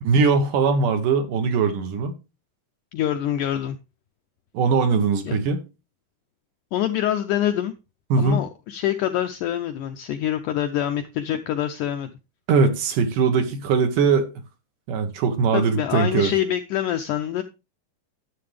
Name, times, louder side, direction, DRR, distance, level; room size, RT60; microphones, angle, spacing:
voice 1, 0.0-2.1 4.5-5.6 8.1-8.4 12.5-14.3 14.9-16.3, right 5 dB, 70° right, 2.5 m, -20 dB
voice 2, 2.9-3.8 5.3-5.4 6.7-7.7 8.2-12.1 15.5-17.4, left 11 dB, 85° left, 1.8 m, -25 dB
11.5 x 7.6 x 3.3 m
omnidirectional pair, 4.3 m